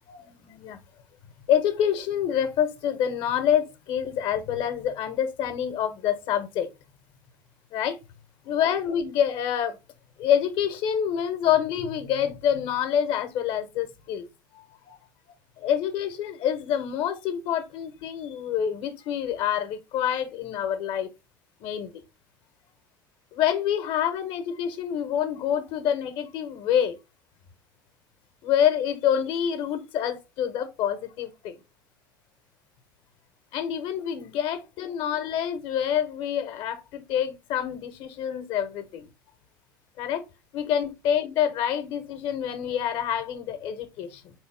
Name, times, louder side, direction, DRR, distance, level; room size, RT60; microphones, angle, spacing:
voice 1, 0.1-0.8 1.5-6.7 7.7-8.0 8.4-9.8 10.2-14.2 14.5-15.0 15.6-21.1 21.6-22.0 23.3-27.0 28.4-31.5 33.5-39.1 40.0-40.2 40.5-44.3, left 9 dB, 55° left, 0.8 m, -27 dB
4.1 x 3.1 x 3.3 m
figure-of-eight pair, 70°, 11 cm